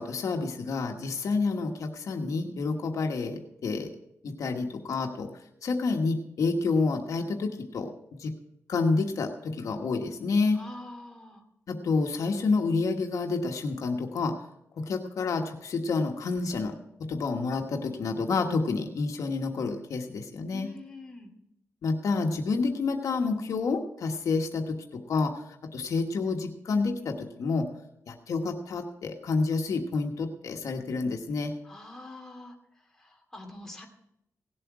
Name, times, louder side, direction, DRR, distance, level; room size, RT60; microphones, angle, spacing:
voice 1, 0.0-3.9 4.2-5.3 5.6-7.9 8.2-8.3 8.7-10.6 11.7-14.4 14.8-20.7 21.8-27.7 28.1-31.5, left 4 dB, 85° left, 4 dB, 1.2 m, -29 dB
voice 2, 10.5-11.4 20.5-21.3 31.6-33.9, left 2 dB, 10° left, 0 dB, 2.4 m, -45 dB
17.5 x 7.7 x 4.8 m, 0.79 s
wide cardioid pair, 125°, 5 cm